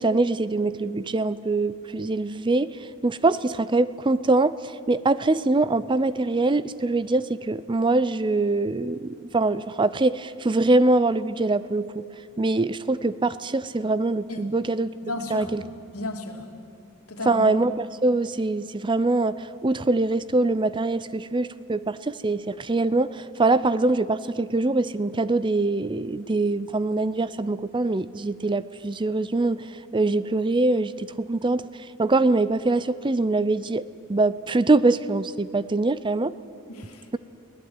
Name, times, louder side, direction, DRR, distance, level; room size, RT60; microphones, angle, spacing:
voice 1, 0.0-12.0 12.4-14.9 15.3-15.6 17.3-33.8 34.1-36.3, right 2 dB, 20° right, 16 dB, 0.5 m, -23 dB
voice 2, 15.0-16.4 17.1-17.4 36.7-37.0, left 2 dB, 75° left, 4 dB, 2.9 m, -34 dB
24.0 x 17.5 x 9.7 m, 2.5 s
head